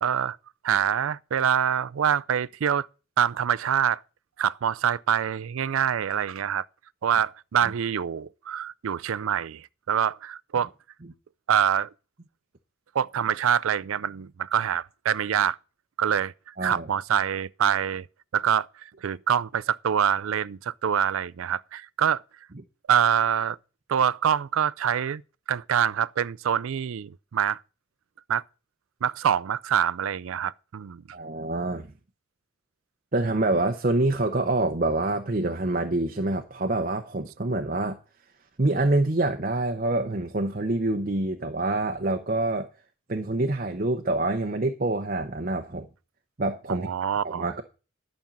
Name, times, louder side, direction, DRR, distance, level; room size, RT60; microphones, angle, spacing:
voice 1, 0.0-0.4 0.6-2.9 3.2-4.0 4.4-6.6 7.0-10.7 11.5-11.9 12.9-15.6 16.0-16.3 16.6-18.1 18.3-18.7 19.0-22.2 22.9-23.6 23.9-25.2 25.5-27.6 28.3-28.4 29.0-31.0 46.7-47.5, right 8 dB, 80° right, 0.4 m, -25 dB
voice 2, 16.6-16.9 31.1-31.9 33.1-38.0 38.6-42.7 43.1-45.9 46.4-46.9 47.2-47.6, right 2 dB, 40° right, 0.8 m, -26 dB
11.5 x 5.4 x 7.2 m
head